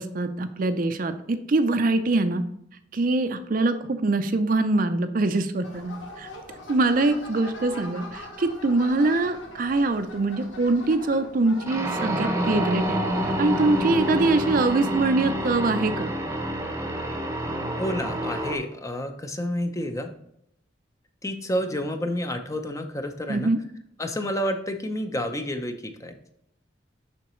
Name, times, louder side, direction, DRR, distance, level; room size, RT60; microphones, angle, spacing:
voice 1, 0.0-2.4 2.9-6.3 6.7-13.0 13.4-16.1 23.3-23.6, right 2 dB, 45° right, 10 dB, 0.5 m, -23 dB
sound 1, 5.6-14.7, left 1 dB, 80° left, 1.6 m, -41 dB
sound 2, 11.7-18.6, right 1 dB, 15° right, 0.8 m, -28 dB
voice 2, 17.8-20.1 21.2-23.5 24.0-26.1, equal, 15° left, 6 dB, 0.6 m, -29 dB
6.9 x 5.7 x 3.1 m, 0.75 s
head